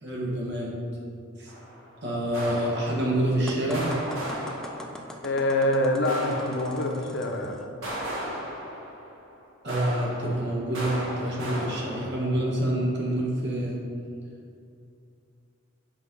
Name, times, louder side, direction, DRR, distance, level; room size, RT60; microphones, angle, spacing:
voice 1, 0.0-0.8 1.4-1.5 2.0-3.9 9.6-13.8, right 1 dB, 55° right, -3 dB, 1.4 m, -27 dB
sound 1, 1.5-1.9 2.3-3.4 3.7-5.3 6.1-7.2 7.8-9.3 9.7-12.6, equal, 70° right, 1.7 m, -36 dB
sound 2, 3.5-7.7, equal, 5° left, 0.4 m, -42 dB
voice 2, 5.2-7.6, left 1 dB, 55° left, 2 dB, 0.8 m, -25 dB
7.3 x 3.7 x 5.4 m, 2.4 s
head